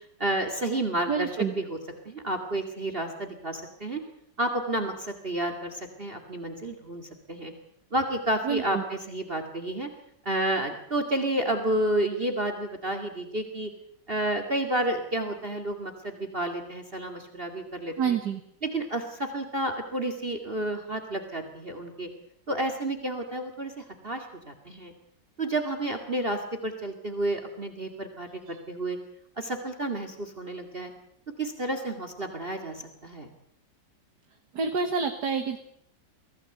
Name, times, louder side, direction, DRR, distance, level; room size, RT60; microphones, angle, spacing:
voice 1, 0.2-1.8 2.0-4.0 4.4-7.5 7.9-9.9 10.3-13.7 14.1-18.2 18.6-22.1 22.5-24.9 25.4-29.0 29.4-30.9 31.4-33.3, right 1 dB, 30° right, 7 dB, 2.4 m, -30 dB
voice 2, 1.1-1.5 8.4-8.8 18.0-18.4 28.5-28.6 34.5-35.6, right 6 dB, 65° right, 6 dB, 2.1 m, -28 dB
24.5 x 16.5 x 7.9 m, 0.73 s
omnidirectional pair, 2.0 m